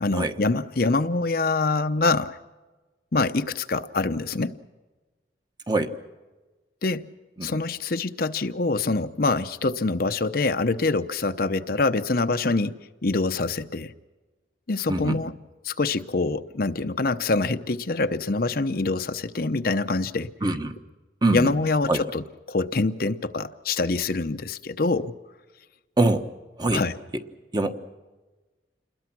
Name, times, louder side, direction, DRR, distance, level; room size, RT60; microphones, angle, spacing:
voice 1, 0.0-2.4 3.1-4.6 6.8-7.1 7.4-13.9 14.7-15.3 15.6-20.3 21.3-25.1 26.7-26.9, left 3 dB, 55° left, 0.8 m, -25 dB
voice 2, 20.4-20.7 21.2-21.5 21.9-22.0 26.0-26.2 26.6-26.8 27.5-27.8, right 2 dB, 25° right, 1.3 m, -23 dB
28.0 x 21.5 x 6.1 m
head